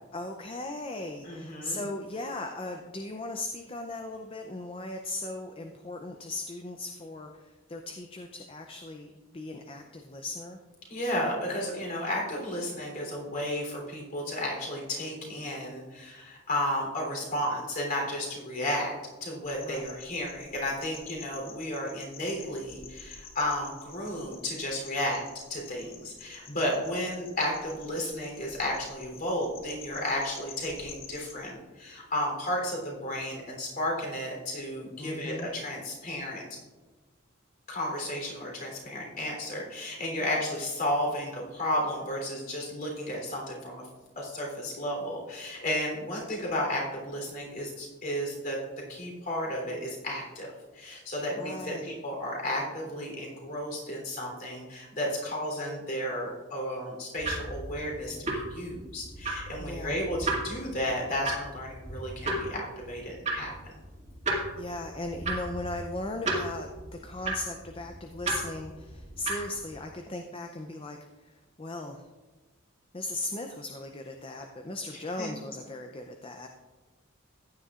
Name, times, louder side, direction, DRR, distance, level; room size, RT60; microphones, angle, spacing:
voice 1, 0.1-10.6 19.6-19.9 35.0-35.5 40.2-40.4 51.4-51.9 59.6-60.0 64.6-72.1 72.9-76.5, left 2 dB, 25° left, 4 dB, 0.5 m, -38 dB
voice 2, 1.2-1.8 10.9-18.9 19.2-25.2 25.5-36.6 37.7-43.8 44.1-48.6 48.9-50.5 50.7-63.7 75.2-75.3, left 1 dB, 45° left, -1 dB, 3.4 m, -33 dB
sound 1, 19.4-31.4, left 5 dB, 65° left, 1.6 m, -49 dB
sound 2, 57.2-69.8, right 2 dB, 35° right, 2.2 m, -35 dB
15.0 x 10.0 x 2.5 m, 1.2 s
head